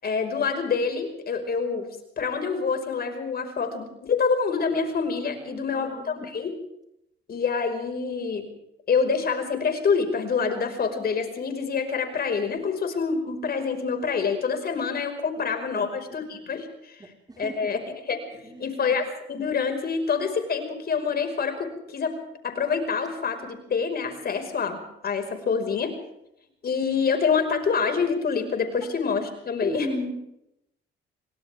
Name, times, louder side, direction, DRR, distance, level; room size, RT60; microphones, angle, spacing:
voice 1, 0.0-1.9 2.2-6.5 7.3-8.5 8.9-17.0 17.4-17.8 18.1-22.1 22.4-25.9 26.6-30.1, left 5 dB, 50° left, 6 dB, 5.3 m, -26 dB
voice 2, 5.4-6.3 14.7-14.8 15.7-16.2 17.0-17.7 18.4-19.0 29.6-30.1, right 2 dB, 20° right, 2 dB, 4.7 m, -37 dB
29.0 x 24.5 x 3.6 m, 0.81 s
cardioid pair, 90°, 20 cm